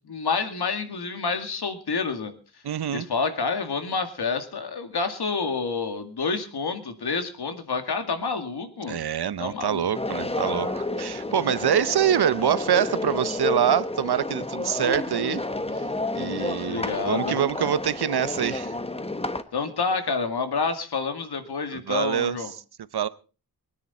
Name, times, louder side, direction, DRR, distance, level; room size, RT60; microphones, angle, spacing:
voice 1, 0.1-2.3 2.9-9.0 9.4-10.2 16.6-17.3 19.5-22.5, left 4 dB, 85° left, 2.2 m, -28 dB
voice 2, 2.6-3.1 8.9-15.4 16.1-18.7 21.7-22.4 22.9-23.1, right 9 dB, 80° right, 0.8 m, -25 dB
sound 1, 9.9-19.4, left 2 dB, 15° left, 1.1 m, -30 dB
23.0 x 10.0 x 4.2 m
wide cardioid pair, 90°, 38 cm